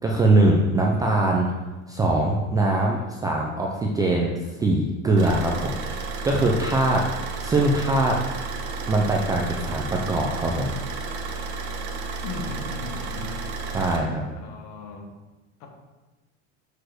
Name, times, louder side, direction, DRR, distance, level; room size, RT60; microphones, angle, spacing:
voice 1, 0.0-1.5 1.9-4.3 4.6-5.9 6.2-8.2 8.9-10.7 13.7-14.2, right 2 dB, 10° right, -1 dB, 0.3 m, -22 dB
Car / Idling, 5.2-14.0, right 4 dB, 75° right, 1.4 m, -32 dB
voice 2, 12.2-13.4 14.3-15.1 15.6-15.7, left 3 dB, 50° left, 2 dB, 1.6 m, -36 dB
6.2 x 4.8 x 6.4 m, 1.2 s
cardioid pair, 165°, 36 cm